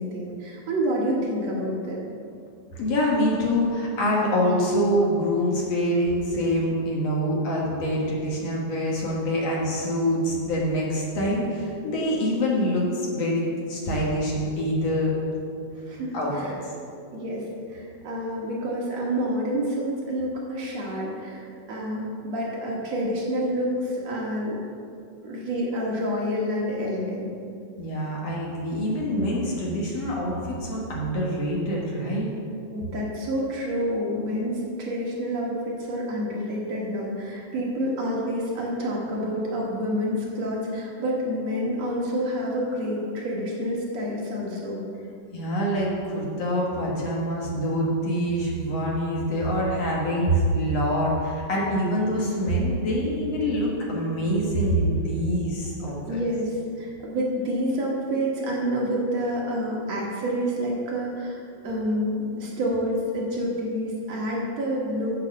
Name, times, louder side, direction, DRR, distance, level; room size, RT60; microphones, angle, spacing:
voice 1, 0.0-2.0 15.7-16.6 17.1-24.6 25.2-27.3 32.7-44.8 56.1-65.2, equal, 60° right, -3 dB, 2.2 m, -28 dB
voice 2, 2.8-15.1 16.1-16.3 16.6-16.7 27.8-32.3 45.3-56.2, equal, 55° left, -3 dB, 2.2 m, -25 dB
8.1 x 7.4 x 6.4 m, 2.4 s
omnidirectional pair, 3.8 m